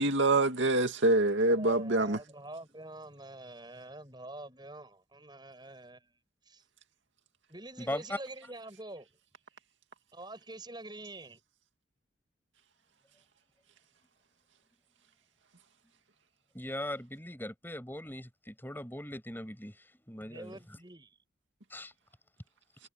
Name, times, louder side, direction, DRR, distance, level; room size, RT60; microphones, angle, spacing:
voice 1, 0.0-2.2, right 2 dB, 70° right, 2.4 m, -25 dB
voice 2, 1.4-6.1 6.5-6.6 7.5-9.1 10.1-11.4 20.2-21.2, right 2 dB, 20° right, 7.0 m, -46 dB
voice 3, 7.8-8.2 16.5-19.7 20.0-20.8 21.7-21.9, left 1 dB, 10° left, 6.8 m, -39 dB
head